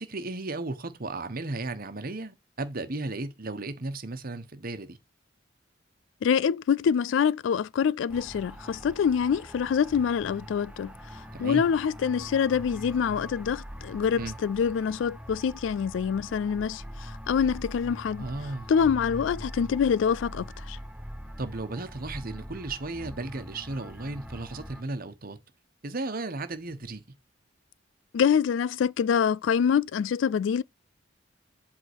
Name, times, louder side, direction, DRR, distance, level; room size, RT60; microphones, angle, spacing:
voice 1, 0.0-5.0 11.3-11.7 14.2-14.4 18.2-18.7 21.4-25.4 25.8-27.0, right 2 dB, 50° right, 1.2 m, -35 dB
voice 2, 6.2-18.3 18.7-20.8 28.1-30.6, left 7 dB, 80° left, 0.3 m, -26 dB
sound 1, 8.1-24.8, equal, 5° right, 0.8 m, -42 dB
8.2 x 3.7 x 4.5 m
head